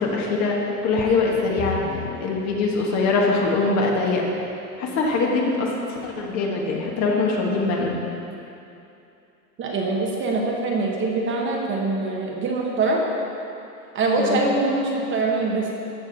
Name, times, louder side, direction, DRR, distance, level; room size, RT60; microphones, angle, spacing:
voice 1, 0.0-1.8 2.2-4.2 4.8-5.7 6.0-7.9 14.2-14.4, left 3 dB, 35° left, -1 dB, 1.5 m, -22 dB
sound 1, 1.0-3.4 4.1-4.2 4.8-4.9, left 8 dB, 20° left, 0.3 m, -36 dB
voice 2, 9.6-13.0 13.9-15.7, right 3 dB, 25° right, -1 dB, 1.1 m, -23 dB
14.0 x 5.8 x 4.1 m, 2.7 s
hypercardioid pair, 125°, 46 cm